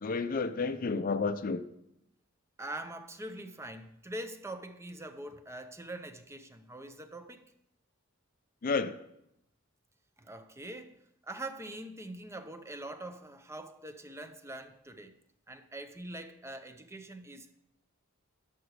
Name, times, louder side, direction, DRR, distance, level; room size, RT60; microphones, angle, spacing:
voice 1, 0.0-1.6 8.6-9.0, left 4 dB, 45° left, 0.5 m, -31 dB
voice 2, 2.6-7.5 10.2-15.2 15.5-17.6, right 1 dB, 15° right, 0.6 m, -43 dB
11.5 x 6.2 x 4.8 m
head